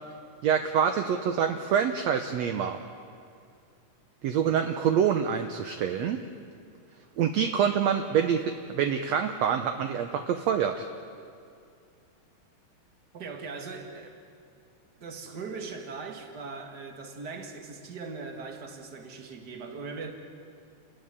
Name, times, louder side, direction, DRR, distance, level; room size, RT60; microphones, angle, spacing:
voice 1, 0.4-2.9 4.2-6.2 7.2-10.9, right 8 dB, 70° right, 6 dB, 1.8 m, -26 dB
voice 2, 13.1-14.2 15.0-20.1, right 4 dB, 35° right, 4 dB, 2.3 m, -40 dB
29.0 x 14.5 x 9.9 m, 2.4 s
omnidirectional pair, 3.7 m